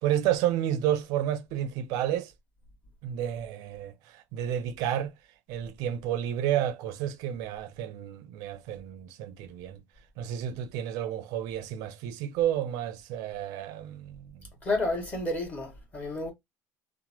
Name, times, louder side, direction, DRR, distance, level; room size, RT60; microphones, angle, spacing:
voice 1, 0.0-2.3 3.0-5.1 5.5-9.8 10.2-14.4, right 11 dB, 65° right, 0.4 m, -31 dB
voice 2, 14.6-16.3, left 2 dB, 20° left, 1.3 m, -30 dB
2.9 x 2.1 x 2.8 m
cardioid pair, 150°, 7 cm